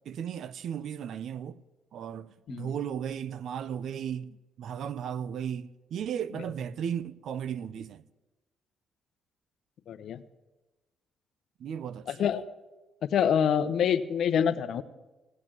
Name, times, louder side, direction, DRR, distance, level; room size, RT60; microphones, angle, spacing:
voice 1, 0.0-1.6 1.9-8.0 11.6-12.3, right 8 dB, 70° right, 0.7 m, -35 dB
voice 2, 9.9-10.2 12.1-12.4 13.0-14.8, left 8 dB, 70° left, 0.9 m, -26 dB
17.0 x 8.3 x 8.9 m
cardioid pair, 90°, 0 cm